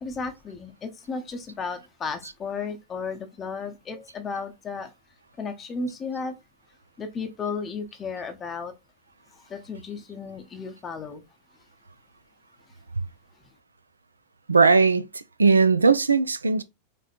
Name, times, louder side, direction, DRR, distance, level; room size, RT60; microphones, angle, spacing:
voice 1, 0.0-4.9 5.4-6.4 7.0-8.7 9.3-11.2, left 4 dB, 25° left, 0.6 m, -34 dB
voice 2, 14.5-15.0 15.4-16.6, right 4 dB, 80° right, 0.3 m, -18 dB
4.2 x 2.9 x 2.4 m
figure-of-eight pair, 90°, 0 cm